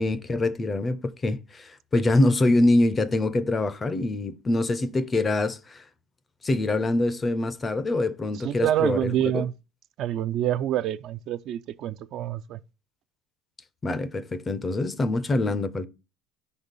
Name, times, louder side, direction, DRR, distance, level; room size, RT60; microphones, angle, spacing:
voice 1, 0.0-5.8 6.4-9.4 13.8-15.9, left 2 dB, 15° left, 0.5 m, -24 dB
voice 2, 8.4-9.5 10.0-12.6, right 11 dB, 45° right, 0.3 m, -27 dB
5.5 x 4.0 x 5.2 m
cardioid pair, 155°, 0 cm